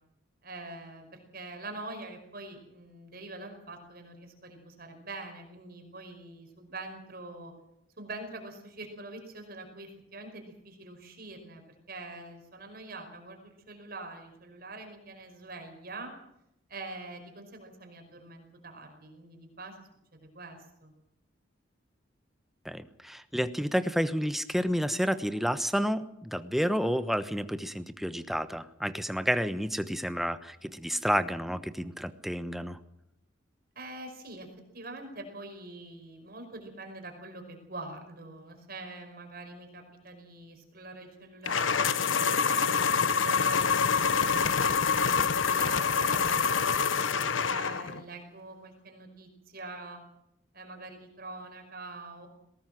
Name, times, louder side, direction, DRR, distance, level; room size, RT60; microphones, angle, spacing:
voice 1, 0.4-7.5 8.0-11.6 11.9-16.1 16.7-19.7 20.1-20.9 33.7-34.5 34.7-42.0 42.5-44.4 44.7-50.0 50.5-52.3, right 2 dB, 50° right, 4 dB, 5.1 m, -44 dB
voice 2, 22.6-32.8, equal, ahead, 11 dB, 1.0 m, -30 dB
sound 1, 41.5-48.0, left 6 dB, 85° left, 1.1 m, -26 dB
20.0 x 18.5 x 7.7 m, 0.82 s
head